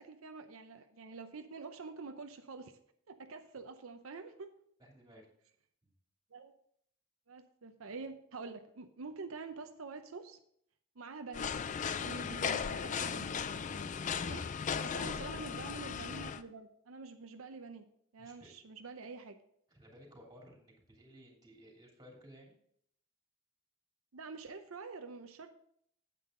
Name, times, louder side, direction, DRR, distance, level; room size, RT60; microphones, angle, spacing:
voice 1, 0.0-2.8 3.1-4.5 6.3-6.5 7.3-10.4 11.0-11.5 12.0-13.4 14.3-14.4 14.8-17.8 18.1-19.4 24.1-25.5, right 4 dB, 85° right, 7 dB, 0.7 m, -47 dB
voice 2, 4.8-5.3 5.8-5.9 14.7-15.2 18.2-18.5 19.7-22.5, equal, 20° right, -1 dB, 3.0 m, -57 dB
sound 1, 11.3-16.4, left 6 dB, 35° left, 0.4 m, -37 dB
9.1 x 8.4 x 3.7 m, 0.68 s
head